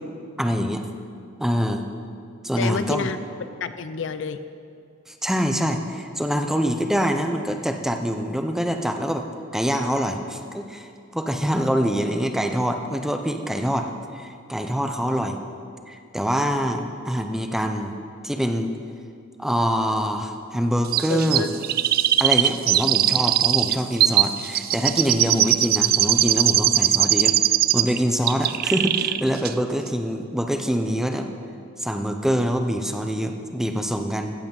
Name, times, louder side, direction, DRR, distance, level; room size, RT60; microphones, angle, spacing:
voice 1, 0.4-0.9 1.4-1.9 2.4-3.1 5.2-9.3 9.5-15.4 15.9-18.0 18.2-18.7 19.4-21.5 22.2-27.4 27.7-31.3 31.8-34.3, equal, ahead, 5 dB, 0.7 m, -25 dB
voice 2, 2.6-4.4 21.1-21.5, left 5 dB, 65° left, 11 dB, 0.5 m, -29 dB
Chirp tweet, 20.9-28.0 28.3-29.2 29.5-29.6, right 12 dB, 50° right, 0.3 m, -20 dB
15.0 x 8.4 x 5.4 m, 2.4 s
head